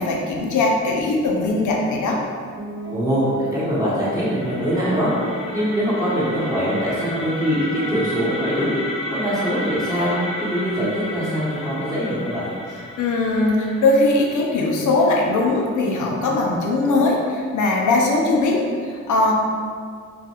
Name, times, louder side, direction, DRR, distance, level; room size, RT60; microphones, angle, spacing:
voice 1, 0.0-2.2 13.0-19.3, left 2 dB, 80° left, -1 dB, 0.5 m, -20 dB
Guitar, 2.6-10.8, right 2 dB, 40° right, 0.5 m, -36 dB
voice 2, 2.9-5.1 5.5-8.8 9.1-12.5, equal, 10° right, -10 dB, 0.9 m, -23 dB
sound 1, 3.4-15.3, left 1 dB, 20° left, 0.5 m, -33 dB
2.4 x 2.2 x 2.9 m, 2.1 s
cardioid pair, 60°, 30 cm